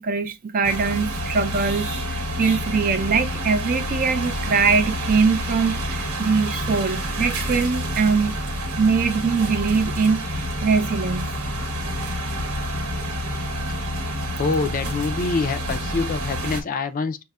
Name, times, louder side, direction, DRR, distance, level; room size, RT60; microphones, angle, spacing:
voice 1, 0.0-8.3 8.8-10.3 10.6-11.4, right 5 dB, 40° right, 0.4 m, -22 dB
sound 1, 0.6-16.6, equal, 90° right, 1.0 m, -28 dB
voice 2, 14.4-17.2, left 4 dB, 40° left, 0.3 m, -25 dB
5.2 x 2.0 x 2.3 m
head